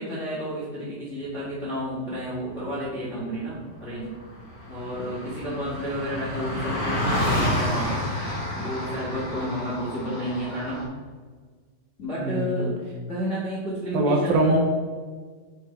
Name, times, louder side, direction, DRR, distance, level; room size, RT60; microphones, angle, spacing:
voice 1, 0.0-4.1 4.7-8.0 8.5-10.8 12.0-12.8 13.1-14.6, equal, 85° left, -8 dB, 0.6 m, -31 dB
Car passing by, 3.7-3.8 4.0-10.8, equal, 25° left, 0.7 m, -29 dB
voice 2, 12.2-12.7 13.9-14.6, right 2 dB, 75° right, 1 dB, 2.3 m, -22 dB
6.5 x 5.4 x 4.4 m, 1.5 s
omnidirectional pair, 4.8 m